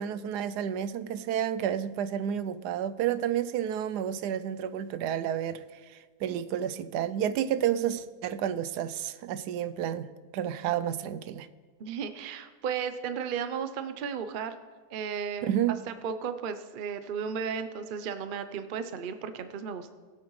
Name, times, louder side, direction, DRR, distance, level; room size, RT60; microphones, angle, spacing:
voice 1, 0.0-11.5 15.4-15.7, right 10 dB, 90° right, 1.2 m, -30 dB
voice 2, 11.8-14.5 14.9-15.5 15.9-19.9, right 7 dB, 55° right, 0.6 m, -34 dB
20.0 x 8.3 x 3.1 m
omnidirectional pair, 1.7 m